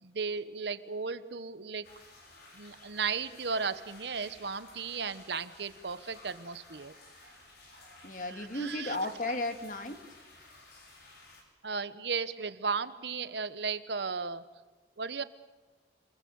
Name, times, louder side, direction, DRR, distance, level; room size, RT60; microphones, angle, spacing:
voice 1, 0.0-1.9 2.5-6.9 7.2-7.3 8.4-9.0 11.6-14.4 15.0-15.2, right 5 dB, 75° right, 13 dB, 1.1 m, -35 dB
sound 1, 1.8-11.4, left 2 dB, 60° left, 6.3 m, -55 dB
voice 2, 2.3-2.9 8.0-10.0 12.4-12.5, left 2 dB, 45° left, 7 dB, 2.1 m, -36 dB
27.0 x 22.5 x 7.1 m, 1.3 s
head